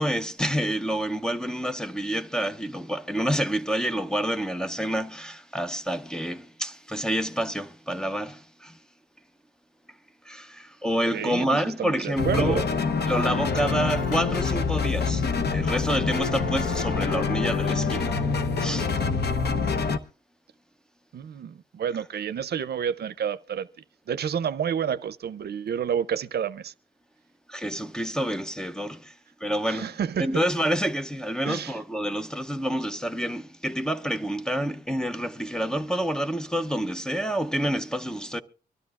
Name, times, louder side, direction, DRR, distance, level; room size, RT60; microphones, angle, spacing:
voice 1, 0.0-8.8 10.2-12.7 13.0-18.2 18.6-18.9 27.5-29.1 29.4-29.9 30.2-38.4, equal, 5° left, 0.6 m, -28 dB
voice 2, 11.1-12.6 21.1-23.7 24.1-26.7 29.7-30.4 31.4-31.7, right 8 dB, 80° right, 0.5 m, -29 dB
sound 1, 12.2-20.0, left 4 dB, 75° left, 0.9 m, -26 dB
24.5 x 13.0 x 2.4 m
wide cardioid pair, 120°, 17 cm